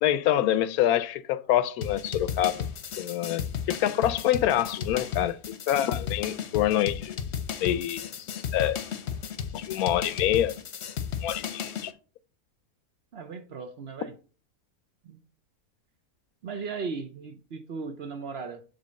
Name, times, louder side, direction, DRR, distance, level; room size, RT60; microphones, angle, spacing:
voice 1, 0.0-2.6 3.0-5.4 5.7-7.2 7.6-8.8 9.5-10.6 11.2-11.9, left 12 dB, 85° left, 1.1 m, -26 dB
sound 1, 1.8-11.9, left 8 dB, 55° left, 0.9 m, -34 dB
voice 2, 13.1-14.1 15.0-15.2 16.4-18.6, right 5 dB, 55° right, 0.8 m, -37 dB
7.7 x 3.5 x 6.2 m
omnidirectional pair, 1.5 m